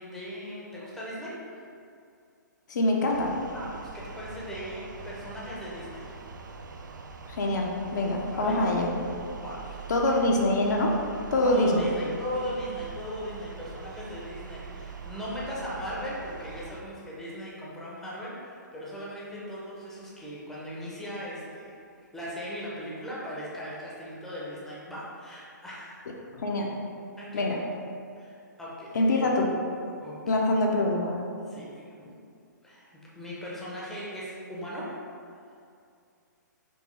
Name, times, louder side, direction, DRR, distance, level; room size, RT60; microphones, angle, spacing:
voice 1, 0.0-1.6 3.5-6.1 8.3-8.6 9.4-9.9 11.4-21.8 22.1-26.0 27.2-27.5 28.2-29.2 30.0-30.4 31.5-32.1 32.6-32.9 33.1-34.9, equal, 5° left, -7 dB, 0.7 m, -38 dB
voice 2, 2.7-3.3 7.3-8.9 9.9-11.0 11.3-11.9 26.3-26.7 27.3-27.6 28.9-29.6 30.3-31.2, left 1 dB, 65° left, -1 dB, 0.6 m, -25 dB
sound 1, 3.1-16.8, right 4 dB, 75° right, 0.4 m, -43 dB
4.4 x 2.6 x 3.2 m, 2.4 s
hypercardioid pair, 135°, 10 cm